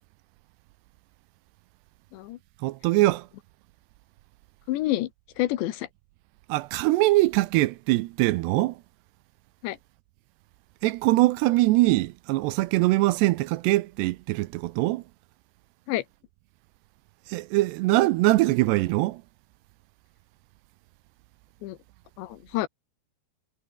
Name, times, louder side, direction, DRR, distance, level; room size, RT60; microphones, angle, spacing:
voice 1, 2.6-3.2 6.5-8.7 10.8-15.0 17.3-19.2, right 19 dB, 80° right, 2.7 m, -22 dB
voice 2, 4.7-5.1 5.4-5.9 9.6-9.8 15.9-16.0 21.6-21.8 22.2-22.7, left 15 dB, 85° left, 3.4 m, -28 dB
omnidirectional pair, 5.1 m